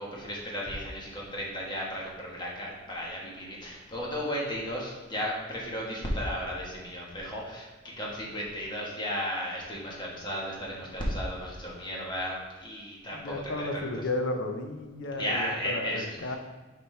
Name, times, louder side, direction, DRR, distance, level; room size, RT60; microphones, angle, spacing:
voice 1, 0.0-13.8 15.2-16.4, equal, 25° left, -3 dB, 1.3 m, -34 dB
voice 2, 13.1-16.4, left 2 dB, 65° left, 5 dB, 0.7 m, -33 dB
5.9 x 5.4 x 3.3 m, 1.3 s
head